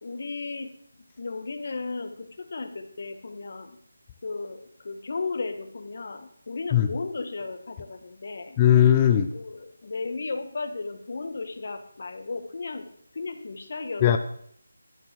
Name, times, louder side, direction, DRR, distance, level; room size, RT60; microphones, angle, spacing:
voice 1, 0.0-0.7 1.2-3.8 4.2-8.6 9.3-12.9 13.1-14.2, left 3 dB, 50° left, 7 dB, 1.7 m, -35 dB
voice 2, 8.6-9.3 14.0-14.2, left 10 dB, 20° left, 6 dB, 0.6 m, -18 dB
12.5 x 12.0 x 4.7 m, 0.65 s
figure-of-eight pair, 165°, 0 cm